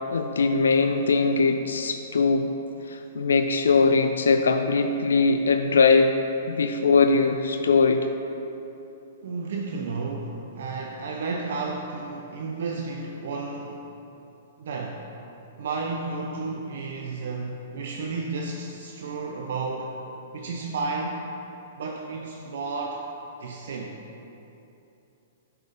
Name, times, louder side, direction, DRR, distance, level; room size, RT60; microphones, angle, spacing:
voice 1, 0.1-2.5 2.9-6.2 6.5-8.1, left 4 dB, 80° left, 6 dB, 0.3 m, -21 dB
voice 2, 9.2-13.9 14.6-15.0 15.6-19.9 20.3-21.2 21.7-23.0 23.4-24.0, right 3 dB, 65° right, 1 dB, 0.5 m, -32 dB
7.0 x 5.7 x 3.8 m, 3.0 s
hypercardioid pair, 115°, 0 cm